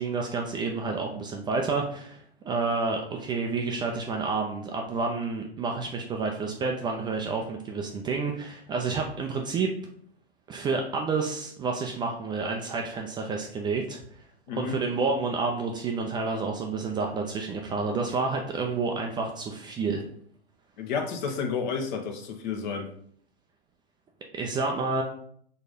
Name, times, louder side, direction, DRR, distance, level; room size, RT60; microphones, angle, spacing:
voice 1, 0.0-9.7 10.5-14.0 14.5-20.0 24.3-25.0, right 4 dB, 15° right, 2 dB, 0.5 m, -29 dB
voice 2, 14.5-14.8 20.8-22.9, left 5 dB, 45° left, 4 dB, 1.3 m, -31 dB
4.6 x 3.9 x 5.2 m, 0.63 s
figure-of-eight pair, 110°, 32 cm